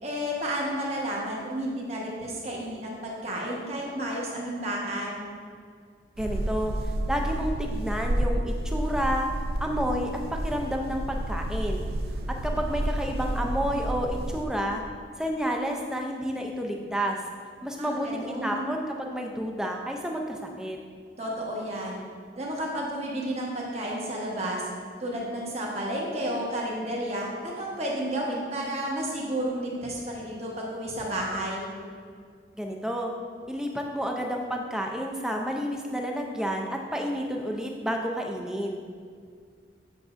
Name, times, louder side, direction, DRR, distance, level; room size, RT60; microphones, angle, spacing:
voice 1, 0.0-5.2 17.8-18.7 21.2-22.0 22.4-24.6 25.0-31.7, right 1 dB, 35° right, -3 dB, 1.2 m, -31 dB
voice 2, 6.2-6.7 7.1-9.3 9.6-11.9 12.4-14.8 15.2-17.2 17.6-20.8 32.5-33.1 33.5-38.8, equal, 5° right, 1 dB, 0.5 m, -30 dB
sound 1, 6.2-14.4, right 1 dB, 55° right, 0.4 m, -30 dB
8.5 x 5.9 x 2.6 m, 2.1 s
head